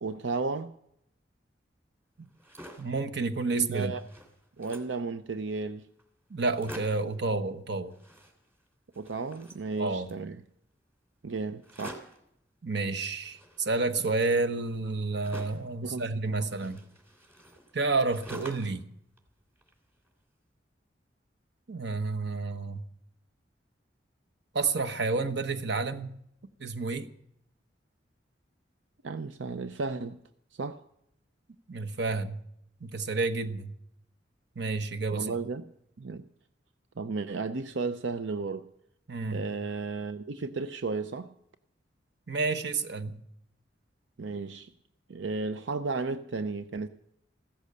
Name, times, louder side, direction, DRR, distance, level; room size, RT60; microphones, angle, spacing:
voice 1, 0.0-0.7 3.5-4.0 4.6-5.9 7.5-7.6 9.0-10.4 11.2-12.0 15.8-16.5 29.0-30.2 30.5-30.8 35.1-35.6 36.0-36.2 37.0-38.7 39.3-41.3 44.2-44.7 45.1-46.9, right 3 dB, 90° right, 0.6 m, -34 dB
sound 1, 2.2-3.0 3.5-3.6 3.8-5.0 5.7-5.8 6.0-6.1 6.4-7.2 7.9-8.7 8.9-10.2 11.6-12.3 13.2-15.7 16.5-18.8 19.2-20.1, equal, 15° right, 3.0 m, -48 dB
voice 2, 2.8-3.9 6.3-7.9 9.8-10.1 12.6-16.8 17.7-18.8 21.7-22.8 24.5-26.1 26.6-27.1 31.7-32.4 32.8-33.7 34.6-35.4 39.1-39.4 42.3-43.2, right 3 dB, 65° right, 1.1 m, -30 dB
16.0 x 13.5 x 6.7 m
head